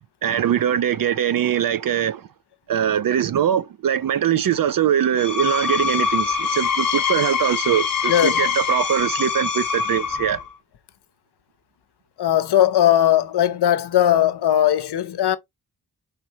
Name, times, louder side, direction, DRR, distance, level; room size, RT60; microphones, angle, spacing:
voice 1, 0.2-2.3 2.7-10.4, right 9 dB, 60° right, 0.4 m, -22 dB
Screech, 5.0-10.5, left 6 dB, 60° left, 1.1 m, -24 dB
voice 2, 8.1-8.4 12.2-15.4, left 11 dB, 80° left, 0.6 m, -18 dB
4.3 x 3.6 x 2.7 m
cardioid pair, 70°, 39 cm